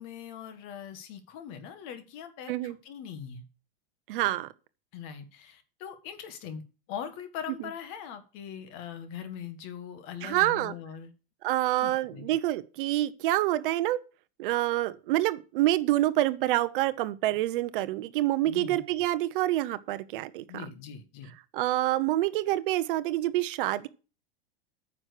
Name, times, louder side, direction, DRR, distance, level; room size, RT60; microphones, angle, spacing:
voice 1, 0.0-3.4 4.9-6.6 6.9-11.1 11.8-12.3 18.5-18.8 20.5-21.3, left 8 dB, 40° left, 1.7 m, -41 dB
voice 2, 4.1-4.5 10.2-10.7 11.4-14.0 14.4-20.7 21.5-23.9, right 15 dB, 55° right, 0.8 m, -27 dB
9.6 x 6.0 x 6.5 m
supercardioid pair, 160°, 32 cm